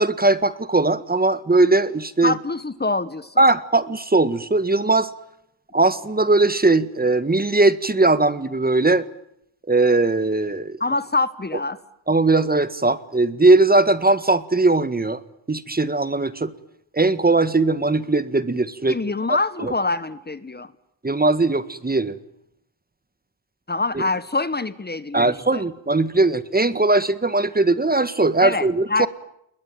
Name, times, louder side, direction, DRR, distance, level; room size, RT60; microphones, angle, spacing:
voice 1, 0.0-2.3 3.4-5.1 5.7-9.1 9.7-10.8 12.1-15.2 15.5-16.5 16.9-19.0 19.6-19.7 21.0-22.2 23.9-24.1 25.1-29.1, right 2 dB, 20° right, 14 dB, 1.7 m, -19 dB
voice 2, 2.2-3.5 10.8-11.8 18.9-20.7 23.7-25.6 28.4-29.1, left 3 dB, 20° left, 15 dB, 1.6 m, -25 dB
29.0 x 21.5 x 9.3 m, 0.77 s
cardioid pair, 75°, 46 cm